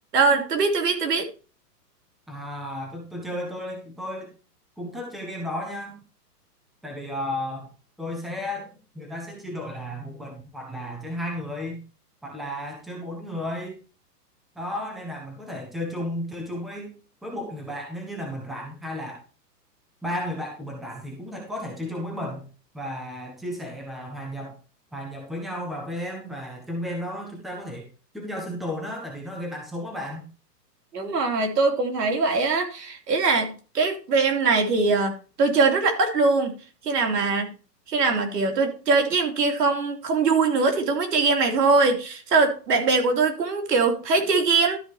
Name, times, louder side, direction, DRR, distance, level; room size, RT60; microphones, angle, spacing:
voice 1, 0.1-1.3 30.9-36.5 36.8-37.5 37.9-44.8, right 4 dB, 75° right, 3 dB, 3.3 m, -22 dB
voice 2, 2.3-4.3 4.8-6.0 6.8-7.7 8.0-8.7 8.9-11.8 12.2-13.8 14.5-16.9 17.2-19.2 20.0-22.5 22.7-24.6 24.9-27.8 28.1-30.3, left 1 dB, ahead, 0 dB, 1.3 m, -33 dB
12.5 x 5.0 x 4.9 m, 0.35 s
hypercardioid pair, 165°, 49 cm